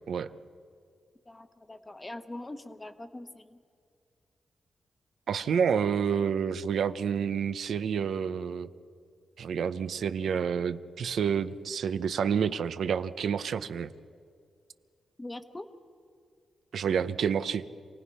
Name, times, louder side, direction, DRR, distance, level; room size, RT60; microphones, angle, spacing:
voice 1, 1.3-3.6 15.2-15.7, left 1 dB, 20° left, 9 dB, 1.1 m, -42 dB
voice 2, 5.3-8.7 9.4-13.9 16.7-17.7, right 7 dB, 75° right, 12 dB, 0.7 m, -29 dB
27.5 x 18.0 x 5.6 m, 2.3 s
cardioid pair, 105°, 0 cm